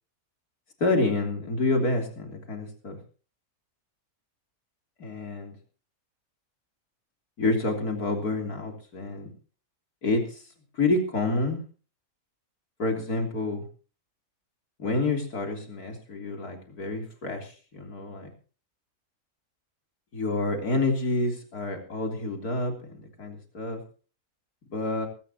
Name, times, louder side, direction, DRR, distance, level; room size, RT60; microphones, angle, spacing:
voice 1, 0.8-3.0 5.0-5.5 7.4-9.3 10.0-10.4 10.7-11.6 12.8-13.7 14.8-18.3 20.1-23.8 24.7-25.1, left 2 dB, 85° left, 2 dB, 3.8 m, -28 dB
19.0 x 17.5 x 2.9 m, 0.38 s
omnidirectional pair, 1.6 m